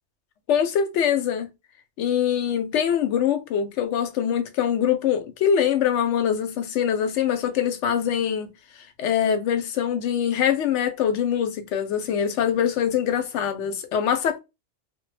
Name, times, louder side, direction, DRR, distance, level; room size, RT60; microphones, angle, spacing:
voice 1, 0.5-1.5 2.0-8.5 9.0-14.4, left 8 dB, 75° left, 0.9 m, -23 dB
2.1 x 2.1 x 3.1 m
omnidirectional pair, 1.3 m